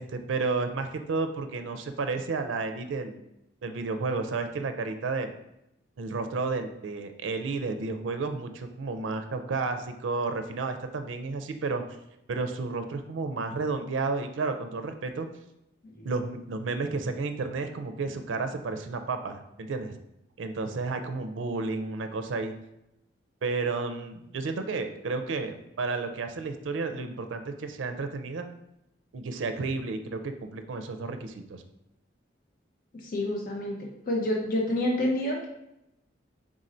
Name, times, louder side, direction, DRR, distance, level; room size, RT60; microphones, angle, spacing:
voice 1, 0.0-3.2 3.6-5.3 6.0-11.8 12.3-15.3 16.0-20.0 20.4-22.5 23.4-28.5 29.1-31.6, right 3 dB, 90° right, 8 dB, 0.4 m, -32 dB
voice 2, 32.9-35.5, left 1 dB, 45° left, -1 dB, 0.7 m, -29 dB
3.7 x 2.6 x 4.2 m, 0.84 s
head